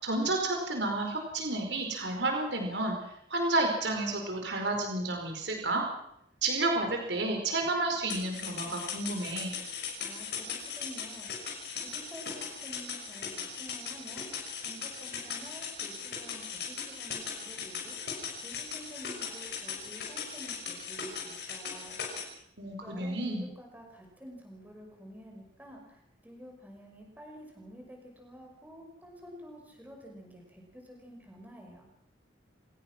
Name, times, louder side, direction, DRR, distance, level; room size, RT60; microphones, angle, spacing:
voice 1, 0.0-3.0 3.3-5.8 6.4-9.5 22.6-23.5, right 2 dB, 70° right, 3 dB, 4.7 m, -31 dB
sound 1, 8.1-22.2, left 6 dB, 60° left, 6.2 m, -39 dB
voice 2, 10.0-11.3 11.8-14.3 14.6-18.0 18.4-22.0 22.8-31.9, equal, 10° right, 0 dB, 5.7 m, -49 dB
27.0 x 18.5 x 6.1 m, 0.78 s
head